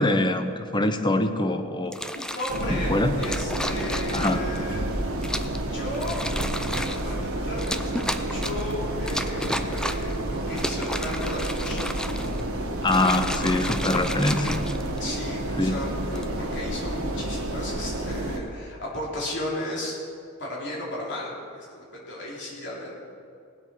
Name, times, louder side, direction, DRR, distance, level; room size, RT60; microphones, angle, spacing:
voice 1, 0.0-2.0 2.7-3.2 4.1-4.5 12.8-14.6 15.6-15.9, left 2 dB, 20° left, 9 dB, 0.8 m, -24 dB
sound 1, 1.9-2.7 3.2-4.6 5.2-5.6 5.9-7.1 7.6-8.7 9.1-10.1 10.5-12.4 12.8-15.2 16.0-16.3, left 1 dB, 5° left, 0.5 m, -32 dB
voice 2, 2.1-4.8 5.6-6.2 6.7-11.9 15.0-20.0 20.4-22.9, left 1 dB, 60° left, -4 dB, 3.3 m, -35 dB
sound 2, 2.5-18.4, right 1 dB, 85° right, 1.5 m, -30 dB
19.0 x 7.8 x 6.1 m, 2.5 s
head